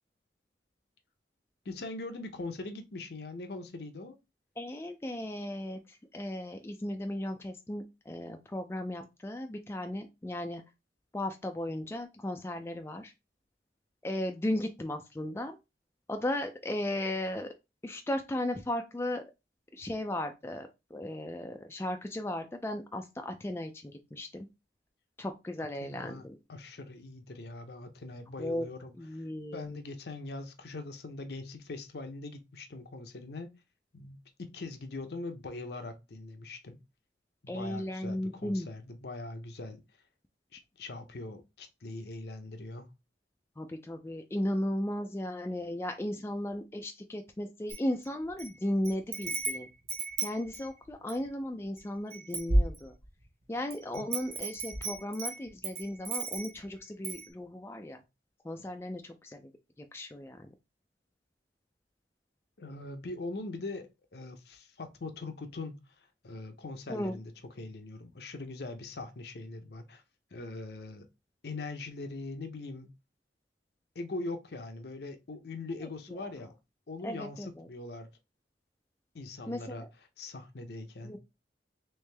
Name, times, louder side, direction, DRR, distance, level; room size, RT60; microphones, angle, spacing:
voice 1, 1.6-4.2 25.8-26.2 26.5-33.5 33.9-36.8 37.4-39.8 40.5-42.9 53.9-54.1 62.6-67.3 67.6-70.0 70.3-71.1 71.4-72.9 73.9-76.5 76.9-78.1 79.1-79.9 80.2-81.1, left 2 dB, 60° left, 0.6 m, -42 dB
voice 2, 4.6-10.6 11.1-13.1 14.0-15.6 16.1-17.5 17.8-19.2 19.7-24.5 25.2-26.4 28.4-28.7 29.0-29.8 37.5-38.7 43.6-49.7 50.2-52.9 53.5-58.0 58.4-59.5 59.8-60.5 66.9-67.2 75.8-75.9 77.0-77.7 79.5-79.9 81.0-81.2, left 1 dB, 15° left, 0.3 m, -36 dB
Wind chime, 47.7-48.5 48.8-51.3 51.8-51.9 52.1-53.2 53.7-56.6 57.0-57.3, right 2 dB, 35° right, 0.8 m, -33 dB
3.3 x 3.1 x 3.3 m
head